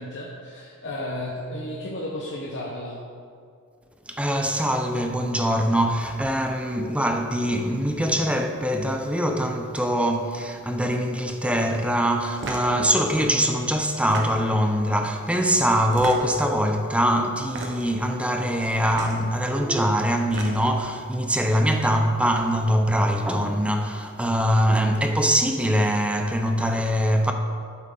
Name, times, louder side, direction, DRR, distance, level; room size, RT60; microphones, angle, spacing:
voice 1, 0.0-3.0, left 1 dB, 55° left, 1.0 m, -33 dB
voice 2, 4.1-27.3, equal, 5° right, 0.6 m, -23 dB
sound 1, 12.4-12.7 13.9-14.6 15.9-16.5 17.4-17.9 18.9-19.2 20.1-20.8, right 2 dB, 55° right, 1.2 m, -35 dB
12.5 x 7.4 x 3.9 m
head